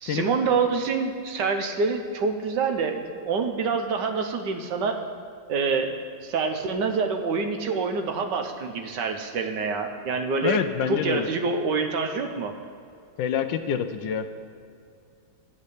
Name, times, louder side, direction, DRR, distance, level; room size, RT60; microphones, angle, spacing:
voice 1, 0.0-5.0 5.5-10.6 10.9-12.5, right 4 dB, 70° right, 6 dB, 1.3 m, -26 dB
voice 2, 10.4-11.3 13.2-14.2, left 7 dB, 75° left, 9 dB, 1.3 m, -26 dB
10.5 x 5.3 x 8.2 m, 2.5 s
omnidirectional pair, 2.1 m